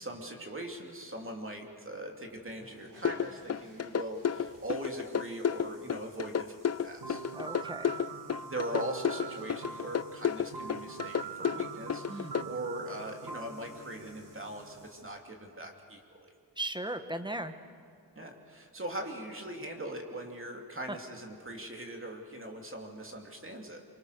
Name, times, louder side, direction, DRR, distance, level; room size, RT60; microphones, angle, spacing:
voice 1, 0.0-7.3 8.4-16.3 18.2-23.8, right 1 dB, 30° right, 2 dB, 2.9 m, -41 dB
sound 1, 2.2-15.0, right 1 dB, 65° right, 7.3 m, -61 dB
sound 2, 3.1-12.4, left 8 dB, 40° left, 0.5 m, -31 dB
sound 3, 7.0-14.9, right 5 dB, 90° right, 2.0 m, -44 dB
voice 2, 7.3-8.0 12.1-12.5 16.6-17.5, right 1 dB, 10° right, 8 dB, 1.2 m, -37 dB
26.5 x 24.5 x 6.7 m, 2.4 s
wide cardioid pair, 115°, 39 cm